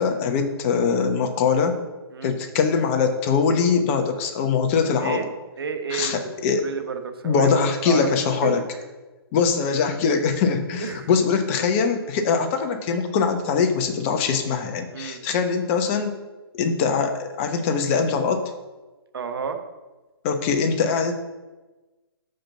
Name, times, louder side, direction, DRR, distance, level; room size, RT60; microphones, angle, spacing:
voice 1, 0.0-1.8 2.2-5.2 5.9-6.6 7.2-8.6 9.3-16.2 16.5-18.4 20.2-21.1, left 5 dB, 30° left, 6 dB, 0.9 m, -22 dB
voice 2, 5.6-6.3 6.6-8.5 10.8-11.1 14.9-15.2 19.1-19.6, right 6 dB, 65° right, 6 dB, 1.2 m, -31 dB
5.8 x 5.1 x 6.7 m, 1.2 s
hypercardioid pair, 140°, 13 cm